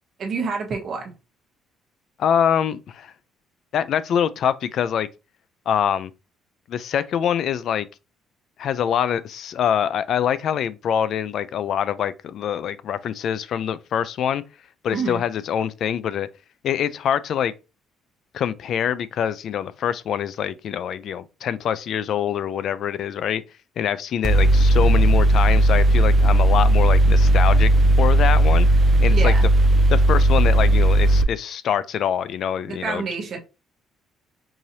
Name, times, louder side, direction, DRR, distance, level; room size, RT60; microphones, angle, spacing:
voice 1, 0.2-1.1 14.9-15.2 29.1-29.5 32.7-33.4, right 4 dB, 50° right, 1.0 m, -28 dB
voice 2, 2.2-3.1 3.7-5.1 5.7-6.1 6.7-7.9 8.6-14.4 14.8-16.3 16.6-17.5 18.3-23.4 23.8-27.7 28.0-28.7 29.0-29.3 29.9-33.1, left 9 dB, 60° left, 0.3 m, -24 dB
Mechanical fan, 24.2-31.2, right 1 dB, 25° right, 0.4 m, -16 dB
4.7 x 2.6 x 2.8 m
cardioid pair, 125°, 0 cm